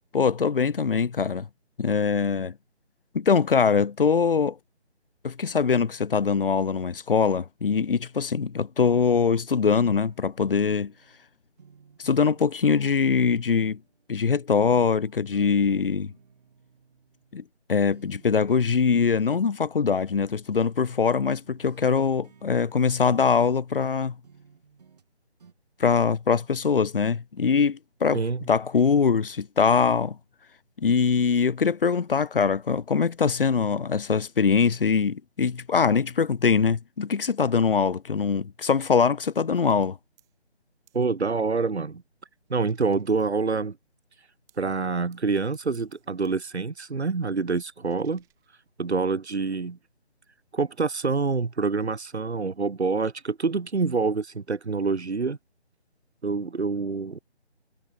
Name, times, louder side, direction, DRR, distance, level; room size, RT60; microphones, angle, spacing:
voice 1, 0.1-1.5 1.8-2.5 3.1-4.6 5.2-10.9 12.0-13.8 14.1-16.1 17.3-17.4 17.7-24.2 25.8-28.2 28.5-30.2 30.8-40.0, left 5 dB, 55° left, 0.6 m, -23 dB
sound 1, 9.6-11.2 11.6-14.4 14.7-17.6 17.9-18.8 19.1-20.7 21.0-23.9 24.2-25.1 25.4-25.5, right 6 dB, 35° right, 4.2 m, -57 dB
voice 2, 28.1-28.5 40.9-42.0 42.5-43.8 44.6-48.2 48.8-49.8 50.5-55.4 56.2-57.2, right 4 dB, 75° right, 1.2 m, -26 dB
sound 2, 38.8-39.1 39.7-39.9 40.2-40.4 40.9-41.1 41.6-43.6 44.5-44.8 45.1-46.5 46.8-49.0, right 17 dB, 10° right, 4.9 m, -67 dB
figure-of-eight pair, 155°, 33 cm